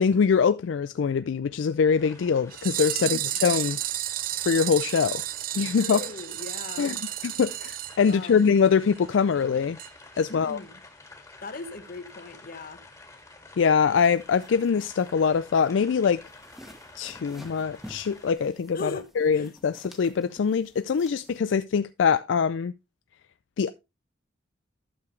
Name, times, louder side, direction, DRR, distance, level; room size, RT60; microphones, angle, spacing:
voice 1, 0.0-3.8 4.4-5.2 5.5-6.0 6.8-7.0 7.2-9.8 10.2-10.6 13.6-16.2 16.9-22.7 23.6-23.7, left 6 dB, 75° left, 0.4 m, -23 dB
sound 1, 2.0-18.3, left 2 dB, 15° left, 1.8 m, -50 dB
sound 2, 2.5-8.7 9.0-9.1 9.3-9.4 9.8-9.9 10.2-10.3, right 14 dB, 50° right, 0.4 m, -32 dB
voice 2, 5.7-7.0 8.0-8.4 10.3-10.8 11.4-12.8 18.7-19.1 19.3-19.5, left 3 dB, 50° left, 1.1 m, -39 dB
sound 3, 13.9-21.4, equal, ahead, 1.4 m, -51 dB
11.5 x 6.9 x 3.1 m
head